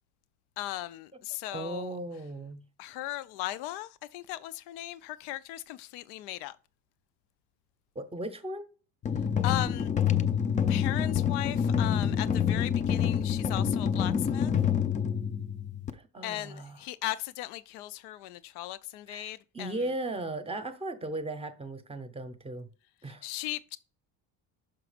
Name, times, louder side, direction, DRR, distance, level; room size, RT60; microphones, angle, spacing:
voice 1, 0.6-2.0 2.8-6.6 9.4-9.9 10.7-14.5 16.2-19.8 23.2-23.8, left 16 dB, 90° left, 0.5 m, -37 dB
voice 2, 1.5-2.6 7.9-8.7 15.9-16.8 19.1-22.7 23.0-23.3, right 2 dB, 15° right, 0.7 m, -37 dB
sound 1, 9.0-15.9, left 8 dB, 20° left, 0.3 m, -27 dB
6.0 x 4.9 x 5.0 m
cardioid pair, 140°, 38 cm